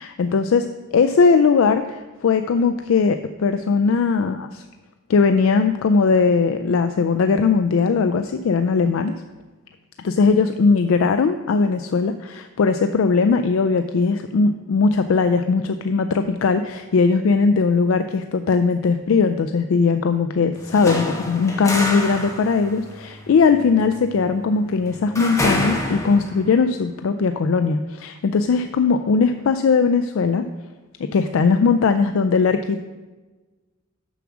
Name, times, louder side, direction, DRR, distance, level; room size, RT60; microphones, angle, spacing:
voice 1, 0.0-4.6 5.1-9.2 10.0-30.5 31.0-32.8, left 4 dB, 70° left, 8 dB, 0.4 m, -19 dB
Walking down stairs, 20.6-26.5, left 1 dB, 15° left, 1.1 m, -27 dB
6.9 x 6.0 x 6.1 m, 1.2 s
head